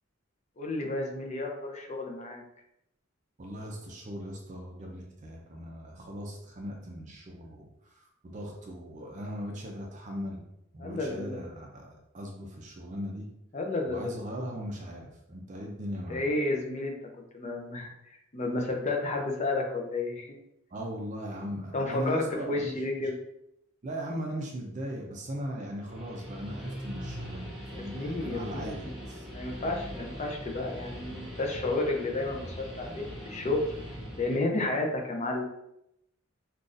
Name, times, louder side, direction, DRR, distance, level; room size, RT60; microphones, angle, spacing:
voice 1, 0.6-2.4 10.8-11.5 13.5-14.2 16.1-17.0 17.3-17.9 18.3-20.3 21.7-23.1 27.7-28.9 29.3-33.8 34.2-35.5, left 2 dB, 35° left, 1 dB, 0.5 m, -31 dB
voice 2, 3.4-10.4 10.7-13.3 13.9-16.3 20.7-22.8 23.8-29.3, equal, 35° right, 0 dB, 0.5 m, -39 dB
Guitar, 25.8-34.4, equal, ahead, 1.0 m, -41 dB
3.8 x 2.4 x 2.5 m, 0.79 s
head